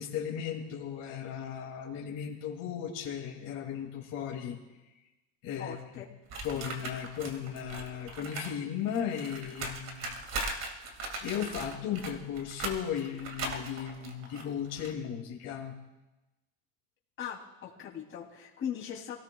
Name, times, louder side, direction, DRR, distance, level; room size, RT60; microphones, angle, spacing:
voice 1, 0.0-4.6 5.4-6.0 6.4-10.1 11.2-15.7, left 8 dB, 60° left, -2 dB, 2.5 m, -36 dB
voice 2, 5.6-6.0 17.2-19.2, left 9 dB, 35° left, -4 dB, 3.0 m, -39 dB
sound 1, 6.3-8.5 8.8-14.9, right 2 dB, 45° right, 2.2 m, -39 dB
28.0 x 17.5 x 2.3 m, 1.1 s
cardioid pair, 165°, 36 cm